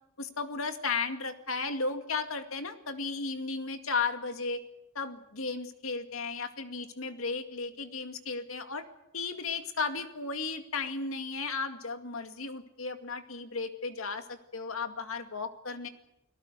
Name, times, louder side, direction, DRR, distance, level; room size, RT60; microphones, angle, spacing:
voice 1, 0.2-4.6 4.9-8.9 9.1-15.9, left 4 dB, 90° left, 7 dB, 2.1 m, -35 dB
30.0 x 19.0 x 6.7 m, 0.84 s
head